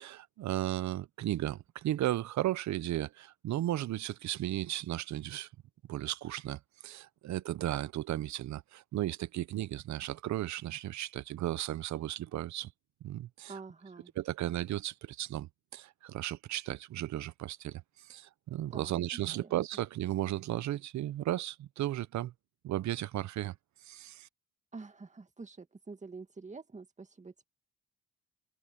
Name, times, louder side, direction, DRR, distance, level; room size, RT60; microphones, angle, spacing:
voice 1, 0.0-5.5 5.9-12.7 13.0-13.5 14.2-22.3 22.6-23.5 23.9-24.3, right 14 dB, 65° right, 0.7 m, -35 dB
voice 2, 13.5-14.1 18.7-19.5 24.7-27.4, right 4 dB, 25° right, 2.1 m, -47 dB
cardioid pair, 90°, 30 cm